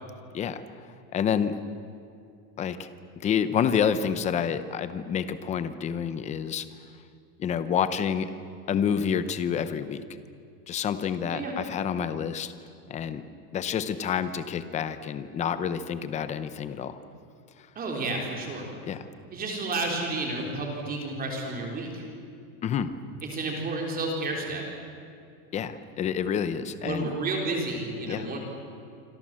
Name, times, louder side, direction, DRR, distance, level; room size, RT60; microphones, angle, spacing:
voice 1, 1.1-1.6 2.6-2.9 3.2-6.7 7.4-8.3 8.7-10.0 10.7-12.5 12.9-13.2 13.5-17.0 18.9-19.0 22.6-22.9 25.5-27.1 28.1-28.3, left 8 dB, 15° left, 12 dB, 0.7 m, -28 dB
voice 2, 17.8-18.7 19.3-22.0 23.3-24.6 26.8-28.4, right 2 dB, 20° right, 0 dB, 3.9 m, -31 dB
27.5 x 26.0 x 7.6 m, 2.4 s
supercardioid pair, 170°, 47 cm